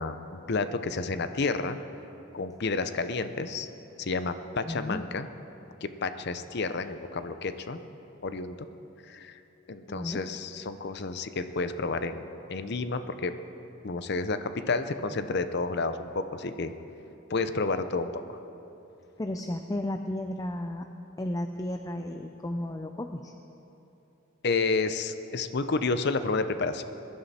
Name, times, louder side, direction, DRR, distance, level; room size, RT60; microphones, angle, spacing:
voice 1, 0.0-1.8 2.3-3.7 4.0-5.3 5.8-7.8 8.2-8.6 9.0-9.4 9.7-13.3 13.8-16.7 17.3-18.2 24.4-26.8, left 3 dB, 55° left, 10 dB, 0.7 m, -30 dB
voice 2, 4.7-5.1 9.9-10.2 19.2-20.9 21.2-23.3, left 1 dB, 15° left, 6 dB, 0.4 m, -33 dB
21.0 x 11.5 x 4.3 m, 2.9 s
head